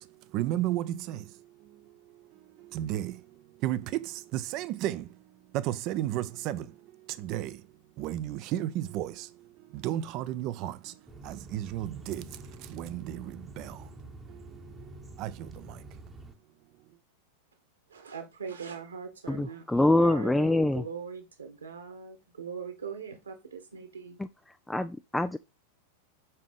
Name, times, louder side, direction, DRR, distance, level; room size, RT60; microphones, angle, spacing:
voice 1, 0.0-5.2 5.5-7.7 8.0-15.8, right 13 dB, 40° right, 0.6 m, -35 dB
sound 1, 11.1-16.3, right 2 dB, 10° right, 1.0 m, -47 dB
voice 2, 17.9-24.2, right 6 dB, 75° right, 1.9 m, -41 dB
voice 3, 19.3-20.8 24.7-25.4, left 2 dB, 5° left, 0.4 m, -25 dB
5.5 x 4.8 x 5.5 m
figure-of-eight pair, 90°, 0 cm